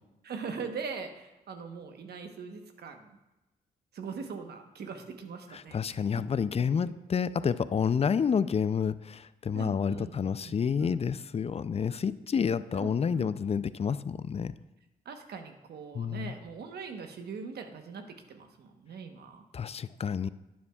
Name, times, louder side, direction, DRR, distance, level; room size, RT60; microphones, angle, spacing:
voice 1, 0.2-3.2 3.9-6.0 6.6-6.9 9.5-10.1 10.4-11.0 12.7-13.3 15.0-19.4, right 5 dB, 75° right, 5 dB, 1.1 m, -41 dB
voice 2, 5.5-14.5 15.9-16.3 19.5-20.3, left 6 dB, 35° left, 15 dB, 0.4 m, -29 dB
11.0 x 9.5 x 2.3 m, 1.0 s
cardioid pair, 55°, 17 cm